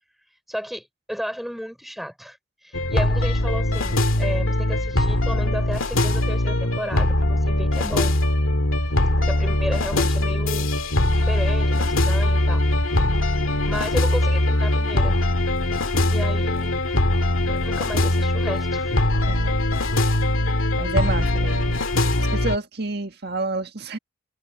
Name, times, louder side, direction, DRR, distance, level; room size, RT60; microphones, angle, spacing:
voice 1, 0.5-2.4 2.6-8.2 9.2-10.7 11.2-12.6 13.6-15.2 16.1-16.7 17.4-18.9, equal, ahead, 6.4 m, -33 dB
sound 1, 2.7-22.6, left 1 dB, 90° left, 2.1 m, -21 dB
voice 2, 19.3-19.6 20.8-21.8 22.2-24.0, right 3 dB, 50° right, 1.8 m, -29 dB
head